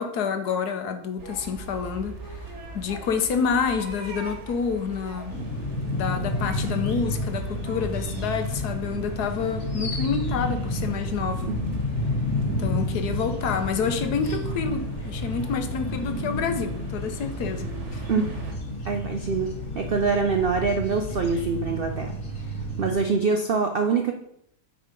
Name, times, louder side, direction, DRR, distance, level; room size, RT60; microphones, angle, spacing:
voice 1, 0.0-2.4 2.7-5.4 5.9-11.6 12.5-18.2, left 6 dB, 70° left, 7 dB, 1.4 m, -28 dB
sound 1, 1.2-18.5, right 3 dB, 45° right, 1.4 m, -39 dB
sound 2, 5.3-22.9, left 1 dB, 50° left, 2.0 m, -30 dB
voice 2, 18.8-22.1 22.8-24.1, right 4 dB, 65° right, 4 dB, 0.5 m, -24 dB
9.2 x 3.8 x 5.2 m, 0.72 s
omnidirectional pair, 1.8 m